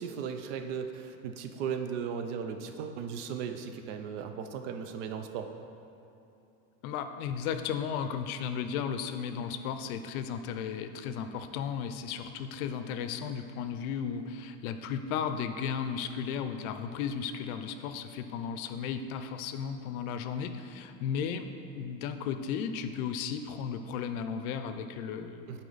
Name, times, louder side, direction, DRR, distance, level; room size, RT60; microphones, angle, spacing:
voice 1, 0.0-5.5 25.5-25.6, right 7 dB, 55° right, 7 dB, 0.5 m, -36 dB
voice 2, 6.8-25.6, left 7 dB, 75° left, 9 dB, 0.6 m, -35 dB
8.3 x 4.3 x 3.9 m, 2.8 s
supercardioid pair, 175°, 43 cm